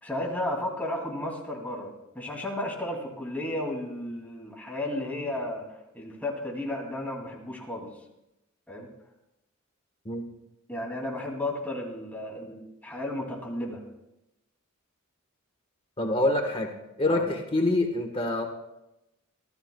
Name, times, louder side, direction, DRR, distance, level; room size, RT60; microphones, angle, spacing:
voice 1, 0.0-1.9 2.1-5.6 5.9-7.9 8.7-8.9 10.7-13.8 17.1-17.2, left 1 dB, 10° left, -1 dB, 2.7 m, -33 dB
voice 2, 16.0-16.7 17.0-18.5, left 2 dB, 25° left, 3 dB, 1.3 m, -26 dB
25.0 x 13.0 x 2.3 m, 0.89 s
head